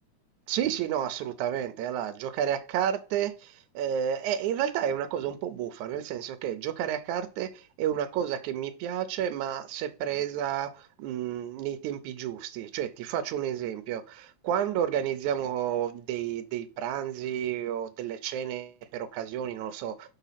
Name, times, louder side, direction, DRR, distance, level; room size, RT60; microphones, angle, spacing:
voice 1, 0.5-20.1, right 10 dB, 80° right, 2.1 m, -31 dB
6.1 x 4.0 x 5.7 m
omnidirectional pair, 3.5 m